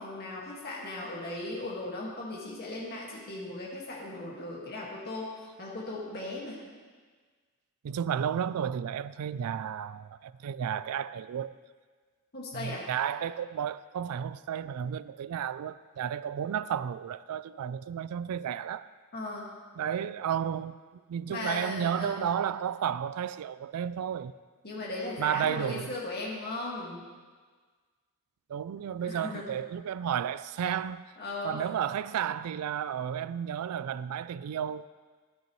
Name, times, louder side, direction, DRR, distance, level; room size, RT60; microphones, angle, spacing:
voice 1, 0.0-6.6 12.3-12.9 19.1-19.5 21.3-22.3 24.6-27.0 29.0-29.5 31.2-31.6, left 2 dB, 45° left, 1.8 m, -37 dB
voice 2, 7.8-11.6 12.5-18.9 19.8-20.8 21.1-24.3 25.2-25.9 28.5-31.0 31.4-34.9, right 8 dB, 90° right, 0.3 m, -32 dB
13.0 x 11.5 x 3.1 m
head